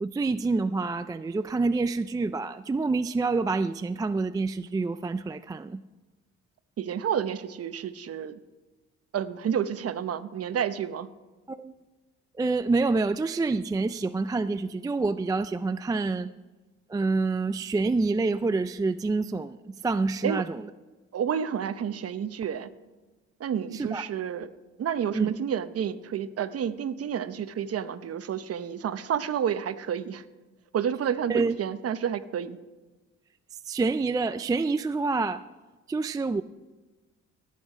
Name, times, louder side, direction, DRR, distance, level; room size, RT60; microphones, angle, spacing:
voice 1, 0.0-5.8 11.5-11.7 12.3-16.3 16.9-20.7 23.7-24.0 25.1-25.3 31.3-31.6 33.6-35.4 35.9-36.4, right 3 dB, 15° right, 11 dB, 0.3 m, -27 dB
voice 2, 6.8-8.4 9.1-11.1 20.2-20.4 21.1-22.7 23.4-24.5 24.8-30.2 30.7-32.6, right 8 dB, 50° right, 12 dB, 0.8 m, -30 dB
18.0 x 8.4 x 5.0 m, 1.2 s
cardioid pair, 90°, 30 cm